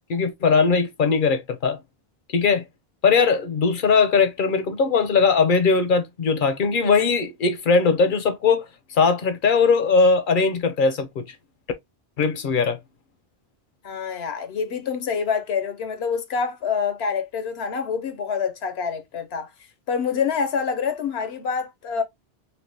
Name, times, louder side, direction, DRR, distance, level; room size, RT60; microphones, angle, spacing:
voice 1, 0.1-1.8 2.3-2.6 3.0-8.6 8.9-11.2 12.2-12.8, left 5 dB, 60° left, 0.7 m, -20 dB
voice 2, 13.8-19.5 19.9-22.0, left 6 dB, 80° left, 0.9 m, -26 dB
3.4 x 2.7 x 2.7 m
omnidirectional pair, 1.1 m